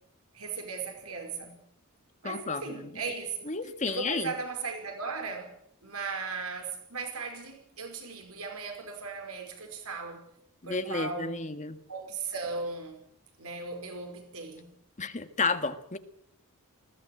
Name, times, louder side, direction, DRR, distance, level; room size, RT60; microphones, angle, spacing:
voice 1, 0.3-1.6 2.2-3.6 3.8-5.6 5.8-10.3 10.6-11.5 11.9-13.0 13.4-14.8, right 4 dB, 80° right, 5.0 m, -37 dB
voice 2, 2.2-2.9 3.5-4.3 10.6-11.8 15.0-16.0, left 4 dB, 35° left, 1.6 m, -32 dB
20.5 x 16.5 x 9.0 m
head